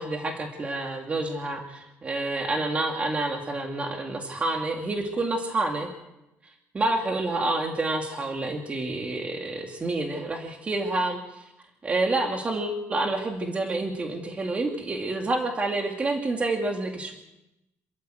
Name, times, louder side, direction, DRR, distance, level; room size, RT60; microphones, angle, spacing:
voice 1, 0.0-5.9 6.7-11.5 11.8-17.1, right 2 dB, 25° right, 2 dB, 2.6 m, -28 dB
27.5 x 14.5 x 7.8 m, 0.93 s
cardioid pair, 150°, 5 cm